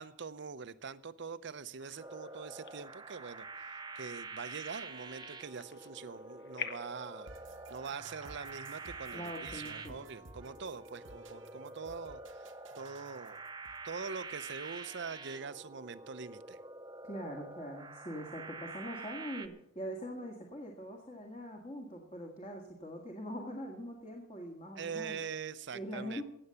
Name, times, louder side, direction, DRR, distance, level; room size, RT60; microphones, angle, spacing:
voice 1, 0.0-3.5 3.9-7.3 7.7-13.4 13.8-16.6 24.8-26.2, right 5 dB, 65° right, 14 dB, 0.6 m, -43 dB
sound 1, 1.8-7.1, left 8 dB, 65° left, 1.1 m, -49 dB
sound 2, 2.0-19.5, right 3 dB, 20° right, 0.8 m, -47 dB
sound 3, 7.3-15.1, right 3 dB, 90° right, 1.1 m, -55 dB
voice 2, 9.1-10.0 17.0-25.2 25.7-26.2, equal, 35° left, 1 dB, 2.0 m, -43 dB
16.5 x 7.8 x 7.0 m, 0.73 s
head